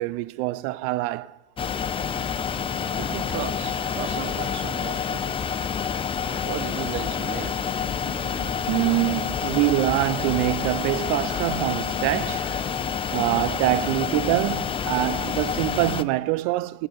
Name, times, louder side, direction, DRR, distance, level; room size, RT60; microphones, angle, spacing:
voice 1, 0.0-1.4 6.3-6.4 8.0-12.7 13.1-16.9, right 18 dB, 75° right, 0.5 m, -25 dB
sound 1, 1.6-16.0, left 7 dB, 20° left, 0.4 m, -28 dB
voice 2, 2.8-5.3 6.4-7.8, right 9 dB, 40° right, 0.9 m, -35 dB
16.5 x 12.0 x 4.1 m
supercardioid pair, 120°, 29 cm